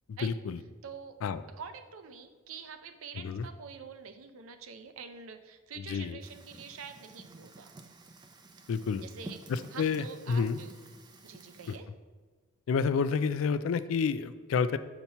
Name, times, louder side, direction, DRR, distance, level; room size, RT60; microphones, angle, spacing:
voice 1, 0.1-0.6 1.2-1.4 3.2-3.5 5.9-6.2 8.7-9.0 9.5-10.6 11.7-11.8 12.7-14.8, left 5 dB, 75° left, 13 dB, 0.3 m, -29 dB
voice 2, 0.8-1.2 1.6-7.7 9.0-9.4 9.7-10.7 11.2-11.9, right 6 dB, 80° right, 9 dB, 0.5 m, -46 dB
Fire, 6.2-11.8, right 2 dB, 20° right, 0.4 m, -51 dB
7.0 x 2.9 x 5.4 m, 1.4 s
head